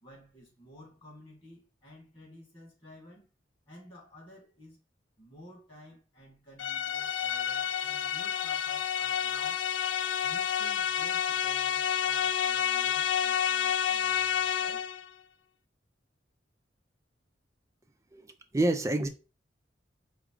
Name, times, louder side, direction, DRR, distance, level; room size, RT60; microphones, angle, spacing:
voice 1, 0.0-3.2 3.7-4.8 5.2-9.6 10.2-14.9, equal, 30° left, 2.3 m, -53 dB
sound 1, 6.6-15.1, left 8 dB, 75° left, 0.4 m, -29 dB
voice 2, 18.1-19.1, right 1 dB, 15° right, 0.4 m, -28 dB
4.9 x 2.1 x 4.7 m
head